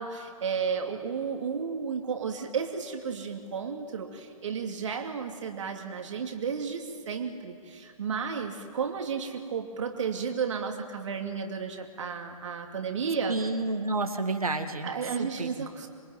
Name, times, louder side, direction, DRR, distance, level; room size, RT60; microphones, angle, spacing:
voice 1, 0.0-13.4 14.8-15.9, right 6 dB, 55° right, 3 dB, 2.7 m, -33 dB
voice 2, 13.3-15.7, right 2 dB, 80° right, 6 dB, 2.1 m, -30 dB
26.5 x 23.5 x 9.4 m, 2.2 s
figure-of-eight pair, 125°, 18 cm